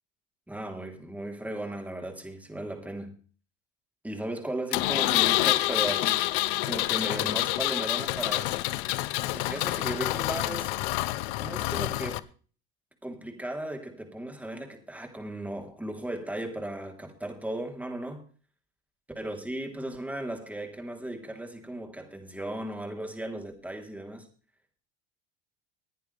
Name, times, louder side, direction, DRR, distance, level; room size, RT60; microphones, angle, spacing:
voice 1, 0.5-3.2 4.0-6.3 6.6-8.5 9.3-10.7 11.4-12.3 13.0-18.2 19.2-24.3, right 1 dB, 5° right, 3.6 m, -36 dB
Engine, 4.7-12.2, left 18 dB, 80° left, 0.8 m, -27 dB
20.0 x 10.5 x 3.4 m
supercardioid pair, 95°, 34 cm